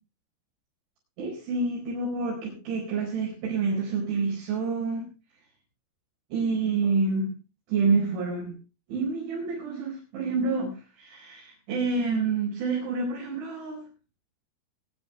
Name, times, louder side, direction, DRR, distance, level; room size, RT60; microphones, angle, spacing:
voice 1, 1.2-5.1 6.3-7.3 7.7-8.6 8.9-13.8, right 4 dB, 90° right, -5 dB, 6.9 m, -28 dB
21.5 x 11.0 x 3.4 m, 0.31 s
omnidirectional pair, 5.2 m